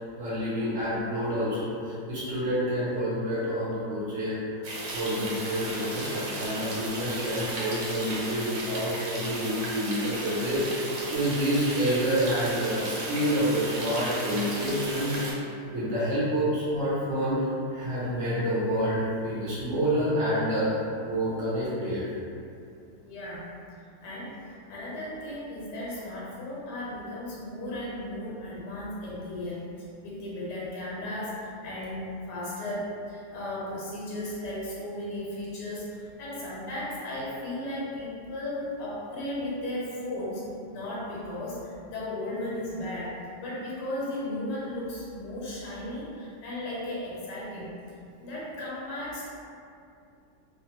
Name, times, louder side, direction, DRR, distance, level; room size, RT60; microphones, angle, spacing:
voice 1, 0.2-4.3 4.9-17.4 17.7-20.7 21.0-22.1, equal, 60° right, -10 dB, 1.0 m, -28 dB
sound 1, 4.6-15.3, right 2 dB, 85° right, 1.2 m, -35 dB
voice 2, 23.0-23.5 24.0-24.3 24.7-29.6 30.0-40.5 40.7-47.7 48.2-49.3, left 1 dB, 85° left, -6 dB, 1.3 m, -35 dB
2.9 x 2.1 x 2.8 m, 2.5 s
omnidirectional pair, 1.8 m